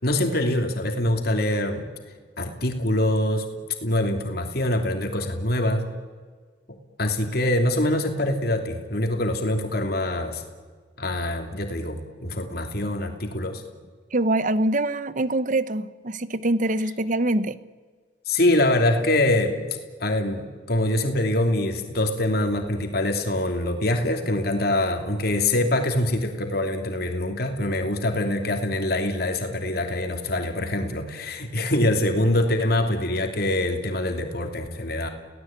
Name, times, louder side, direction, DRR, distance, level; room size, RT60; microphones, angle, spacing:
voice 1, 0.0-1.9 2.4-3.4 3.8-5.8 7.0-10.4 11.0-13.6 18.3-19.6 20.0-35.1, left 1 dB, 55° left, 4 dB, 3.0 m, -24 dB
voice 2, 14.1-17.6, right 1 dB, 45° right, 15 dB, 0.9 m, -24 dB
29.5 x 17.5 x 8.9 m, 1.5 s
head